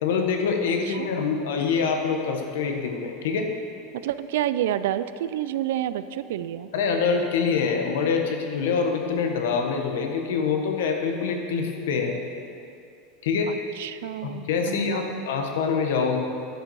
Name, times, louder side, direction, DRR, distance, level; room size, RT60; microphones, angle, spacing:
voice 1, 0.0-3.5 6.7-12.2 13.2-13.6 14.2-16.2, left 5 dB, 85° left, 4 dB, 1.2 m, -25 dB
voice 2, 0.6-1.1 4.0-6.7 13.5-15.3, right 12 dB, 80° right, 13 dB, 0.4 m, -29 dB
11.0 x 6.6 x 4.7 m, 2.5 s
supercardioid pair, 145°, 0 cm